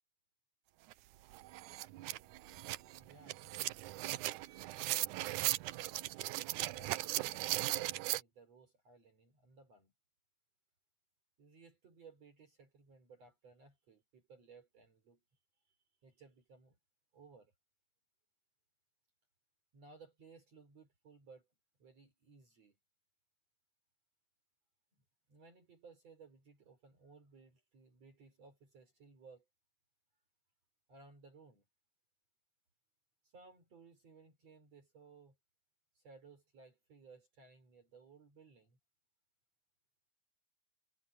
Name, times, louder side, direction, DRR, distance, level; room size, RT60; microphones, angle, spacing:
sound 1, 0.9-1.0 1.3-8.2, right 16 dB, 75° right, 2.0 m, -38 dB
voice 1, 2.8-3.5 6.6-9.9 11.4-15.2 15.7-15.8 16.0-16.8 17.1-17.5 19.7-21.5 21.8-22.8 24.9-25.0 25.3-29.5 30.9-31.6 33.2-35.4 36.0-38.8, right 4 dB, 45° right, 5.2 m, -60 dB
omnidirectional pair, 4.0 m